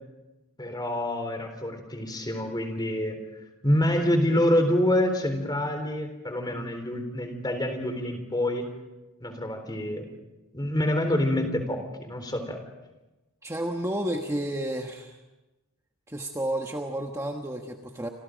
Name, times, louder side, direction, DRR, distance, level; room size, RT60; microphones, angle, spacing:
voice 1, 0.6-3.2 3.6-8.7 9.2-10.1 10.5-12.6, left 1 dB, 20° left, 6 dB, 3.9 m, -26 dB
voice 2, 13.4-15.2 16.1-18.1, right 1 dB, 15° right, 2 dB, 1.3 m, -31 dB
29.5 x 26.0 x 5.2 m, 1.1 s
head